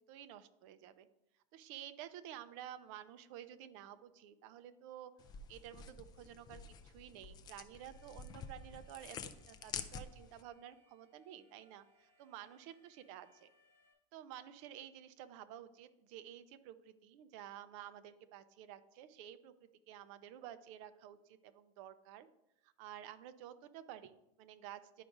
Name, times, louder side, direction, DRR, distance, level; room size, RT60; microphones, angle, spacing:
voice 1, 0.1-1.1 1.5-5.1 5.5-13.5 14.1-19.5 19.9-22.3 22.6-25.0, right 11 dB, 55° right, 10 dB, 0.6 m, -52 dB
sound 1, 5.2-10.4, left 6 dB, 20° left, 0.4 m, -49 dB
Alarm, 7.7-13.9, left 2 dB, 70° right, 2.9 m, -72 dB
11.5 x 4.8 x 2.6 m, 0.86 s
supercardioid pair, 165°, 19 cm